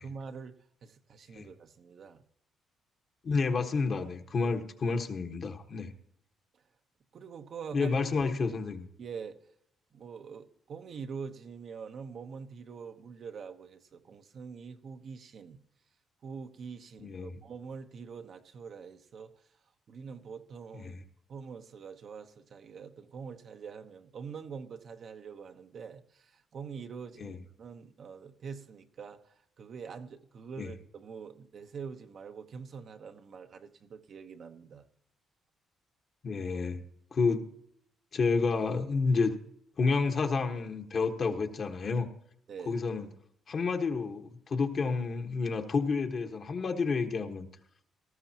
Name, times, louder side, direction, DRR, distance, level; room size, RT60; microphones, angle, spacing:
voice 1, 0.0-2.2 4.4-4.5 7.1-7.9 9.0-9.4 9.9-15.6 16.2-19.5 19.9-20.9 21.3-34.9 42.5-42.8, right 6 dB, 60° right, 6 dB, 1.0 m, -44 dB
voice 2, 3.2-5.9 7.7-8.8 17.0-17.4 20.9-21.0 27.2-27.4 30.6-30.7 36.2-36.8 37.1-37.5 38.1-39.3 39.8-42.1 42.7-43.1 43.5-47.5, left 4 dB, 50° left, 4 dB, 1.4 m, -30 dB
18.5 x 13.5 x 2.9 m, 0.70 s
cardioid pair, 90°, 0 cm